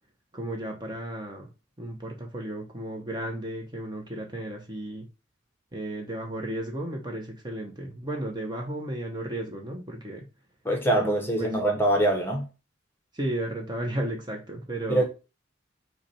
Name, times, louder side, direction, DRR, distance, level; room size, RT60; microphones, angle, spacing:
voice 1, 0.3-1.5 1.8-5.1 5.7-10.3 10.9-11.5 13.1-15.0, right 1 dB, 20° right, 0.7 m, -34 dB
voice 2, 10.6-12.5 14.9-15.0, right 1 dB, 10° left, 0.8 m, -23 dB
5.6 x 2.2 x 4.1 m
head